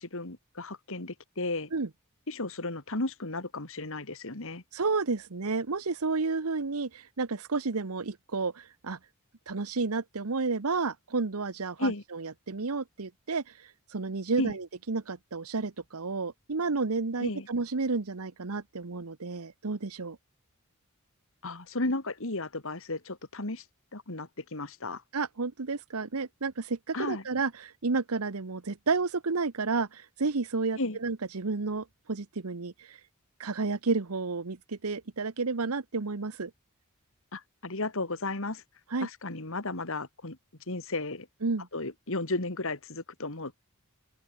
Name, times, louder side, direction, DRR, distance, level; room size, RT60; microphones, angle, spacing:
voice 1, 0.0-1.7 2.3-4.6 11.8-12.0 14.4-14.6 17.2-17.5 21.4-23.6 23.9-25.0 26.9-27.2 30.8-31.0 37.3-38.6 39.0-40.4 40.7-41.3 41.7-43.6, left 2 dB, 65° left, 2.8 m, -34 dB
voice 2, 4.7-9.0 9.5-13.4 13.9-20.2 25.1-33.0 33.4-36.5 38.9-39.1 41.4-41.7, right 4 dB, 75° right, 1.0 m, -31 dB
head